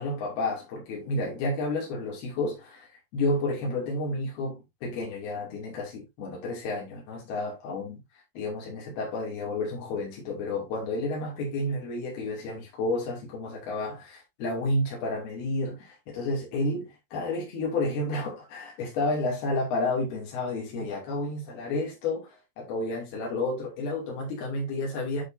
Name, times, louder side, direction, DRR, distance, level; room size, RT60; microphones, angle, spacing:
voice 1, 0.0-2.9 3.1-8.0 8.4-25.2, left 2 dB, 75° left, 4.5 m, -31 dB
10.0 x 5.4 x 2.7 m
omnidirectional pair, 4.5 m